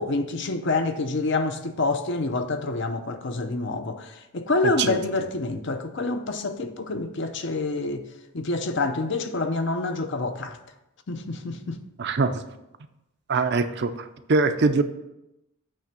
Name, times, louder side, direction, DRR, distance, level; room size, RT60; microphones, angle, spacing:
voice 1, 0.0-8.1 8.3-10.6 11.1-11.8, left 3 dB, 55° left, 0.6 m, -27 dB
voice 2, 12.0-12.4 13.3-14.8, right 3 dB, 50° right, 0.5 m, -23 dB
8.7 x 3.4 x 6.7 m
head